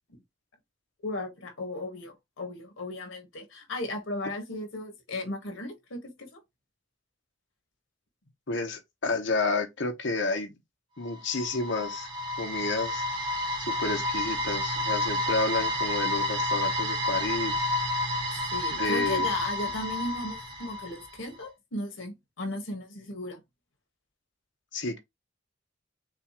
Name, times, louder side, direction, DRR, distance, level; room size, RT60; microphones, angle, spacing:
voice 1, 1.0-6.4 18.3-23.4, left 1 dB, 85° left, 1.6 m, -36 dB
voice 2, 8.5-10.5 11.0-12.1 12.4-13.0 13.6-17.7 18.7-19.3 24.7-25.0, left 3 dB, 65° left, 1.1 m, -30 dB
sound 1, 11.1-21.1, left 1 dB, 25° right, 1.3 m, -30 dB
6.6 x 2.5 x 3.0 m
head